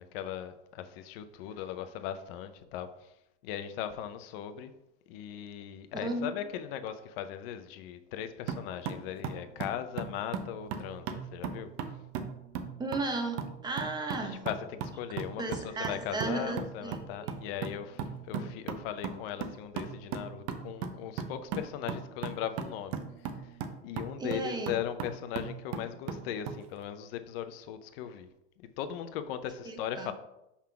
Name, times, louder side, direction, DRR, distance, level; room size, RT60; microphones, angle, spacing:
voice 1, 0.0-3.1 3.4-4.7 5.1-11.7 14.2-23.0 23.4-23.6 23.8-28.3 28.8-30.1, left 10 dB, 55° left, 10 dB, 0.7 m, -38 dB
voice 2, 6.0-6.3 12.8-14.5 15.4-17.4 24.2-24.7 29.6-30.1, right 2 dB, 10° right, 4 dB, 0.9 m, -35 dB
sound 1, 8.5-26.6, right 6 dB, 50° right, 0.9 m, -39 dB
5.7 x 3.6 x 5.7 m, 0.87 s
supercardioid pair, 135°, 36 cm